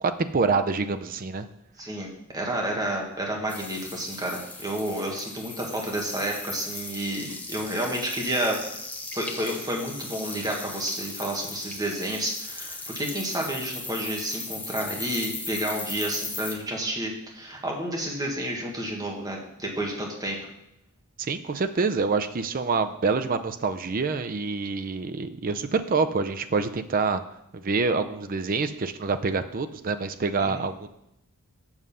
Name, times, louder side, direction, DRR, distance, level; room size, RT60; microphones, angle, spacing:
voice 1, 0.0-1.5 21.2-27.2 27.5-30.9, right 4 dB, 40° right, 9 dB, 0.5 m, -26 dB
voice 2, 1.8-2.1 2.3-8.6 9.1-20.4 30.4-30.6, right 1 dB, 15° right, -1 dB, 1.5 m, -30 dB
sound 1, 3.5-16.5, left 2 dB, 5° left, 0.7 m, -38 dB
7.2 x 6.3 x 5.6 m, 0.82 s
head